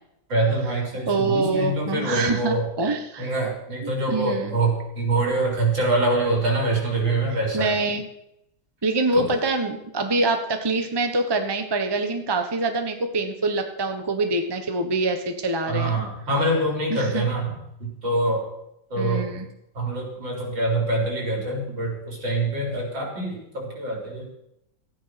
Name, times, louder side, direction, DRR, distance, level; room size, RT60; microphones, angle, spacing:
voice 1, 0.3-2.7 3.2-7.8 9.1-9.3 15.7-18.5 18.9-19.3 19.7-24.3, right 2 dB, 80° right, 0 dB, 4.9 m, -25 dB
voice 2, 1.1-3.3 3.8-4.6 7.5-8.1 8.8-16.0 16.9-17.2 19.0-19.4, right 2 dB, 15° right, 6 dB, 1.1 m, -25 dB
14.5 x 9.4 x 6.0 m, 0.80 s
omnidirectional pair, 2.1 m